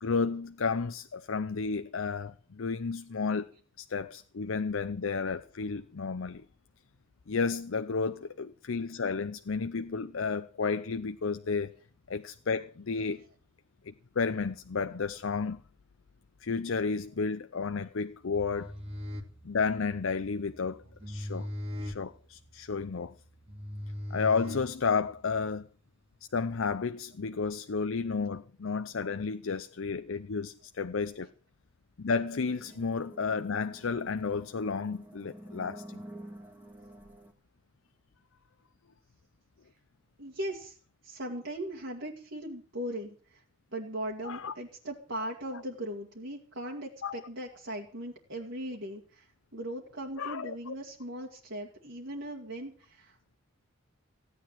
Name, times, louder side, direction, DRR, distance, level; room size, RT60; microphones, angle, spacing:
voice 1, 0.0-3.5 3.8-6.4 7.3-11.7 12.1-13.2 13.8-15.6 16.4-18.7 19.4-21.5 21.8-23.2 24.1-25.7 26.3-31.3 32.0-36.0 44.2-44.5 47.0-47.1 50.2-50.8, left 5 dB, 70° left, 0.6 m, -32 dB
sound 1, 18.2-25.2, left 1 dB, 30° right, 2.0 m, -40 dB
sound 2, 32.3-37.3, right 1 dB, 10° right, 1.9 m, -49 dB
voice 2, 40.2-40.8 41.0-43.4 43.7-53.4, right 1 dB, 60° right, 2.1 m, -39 dB
16.0 x 9.5 x 7.4 m
head